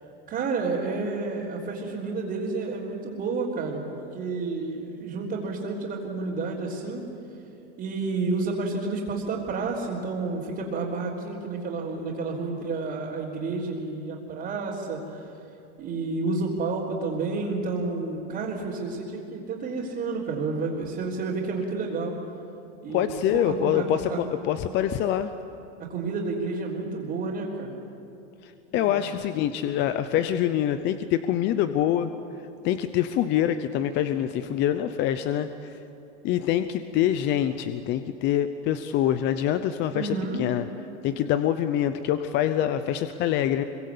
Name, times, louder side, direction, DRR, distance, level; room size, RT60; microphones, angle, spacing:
voice 1, 0.3-7.1 7.8-15.3 15.8-22.2 22.8-24.3 25.8-27.7 28.7-28.9 39.9-40.5, right 3 dB, 30° right, -8 dB, 3.7 m, -30 dB
voice 2, 22.9-25.3 28.4-32.1 32.6-35.7 36.2-40.7 41.0-43.6, left 11 dB, 30° left, 10 dB, 0.7 m, -25 dB
25.0 x 23.5 x 8.5 m, 2.9 s
supercardioid pair, 160°, 35 cm